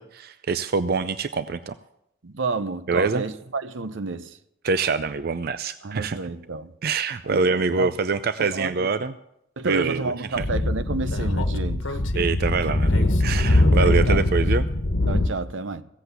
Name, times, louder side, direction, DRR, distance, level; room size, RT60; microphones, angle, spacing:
voice 1, 0.0-1.7 2.9-3.2 4.6-6.2 6.8-9.1 9.6-10.4 12.2-14.7, right 4 dB, 50° right, 0.5 m, -25 dB
voice 2, 2.2-4.4 5.8-6.7 7.2-7.9 8.4-9.1 9.6-12.0 14.1-14.2 15.1-15.8, right 3 dB, 80° right, 0.8 m, -30 dB
Speech / Wind, 10.3-15.3, left 1 dB, 80° left, 1.2 m, -21 dB
16.0 x 8.1 x 8.0 m
head